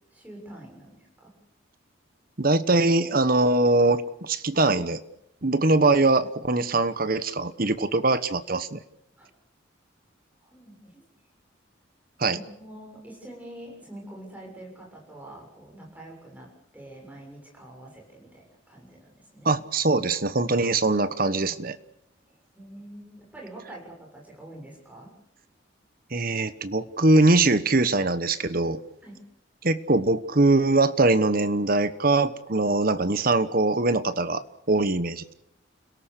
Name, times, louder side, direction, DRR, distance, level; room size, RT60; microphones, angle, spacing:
voice 1, 0.1-1.3 9.2-9.3 10.4-11.0 12.2-19.5 22.3-25.1 29.0-29.2, right 1 dB, 10° right, -1 dB, 7.1 m, -45 dB
voice 2, 2.4-5.0 5.4-8.8 12.2-12.4 19.4-21.8 26.1-28.8 29.6-34.4 34.7-35.2, right 2 dB, 45° right, 13 dB, 1.2 m, -22 dB
30.0 x 18.0 x 6.7 m, 0.79 s
head